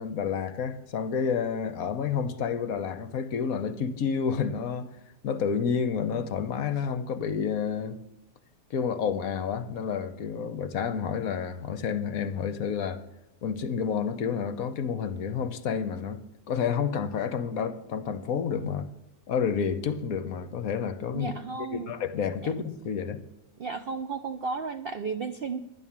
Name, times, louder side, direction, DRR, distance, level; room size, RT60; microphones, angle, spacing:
voice 1, 0.0-4.9 5.2-8.0 8.7-13.0 13.4-16.2 16.5-18.9 19.3-21.3 21.7-23.2, left 6 dB, 60° left, 1.1 m, -29 dB
voice 2, 21.1-22.0 23.6-25.6, right 4 dB, 80° right, 0.5 m, -33 dB
11.0 x 10.0 x 7.2 m
omnidirectional pair, 1.8 m